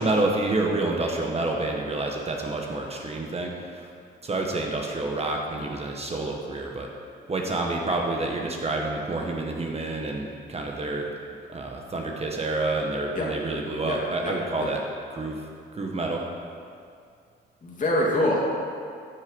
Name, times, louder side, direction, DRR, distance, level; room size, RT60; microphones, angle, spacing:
voice 1, 0.0-3.9 4.2-6.9 7.3-11.1 11.5-14.8 15.1-15.4 15.7-16.2, right 2 dB, 30° right, 0 dB, 1.4 m, -28 dB
voice 2, 13.8-14.7 17.6-18.6, left 1 dB, 40° left, -3 dB, 2.9 m, -26 dB
14.0 x 6.5 x 5.4 m, 2.3 s
cardioid pair, 90°, 20 cm